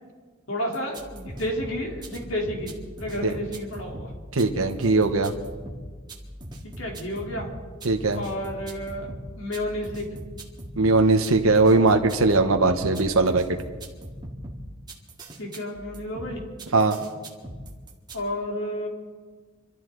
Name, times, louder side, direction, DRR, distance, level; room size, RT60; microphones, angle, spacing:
voice 1, 0.5-2.7 3.0-4.1 6.8-7.5 8.2-9.1 9.4-10.2 15.4-16.4 18.1-18.9, equal, 70° left, -1 dB, 3.5 m, -31 dB
sound 1, 0.7-18.2, right 1 dB, 20° right, 1.9 m, -40 dB
voice 2, 4.3-5.3 7.8-8.2 10.8-13.4 16.7-17.0, right 3 dB, 80° right, 5 dB, 1.1 m, -20 dB
26.0 x 13.5 x 3.9 m, 1.5 s
head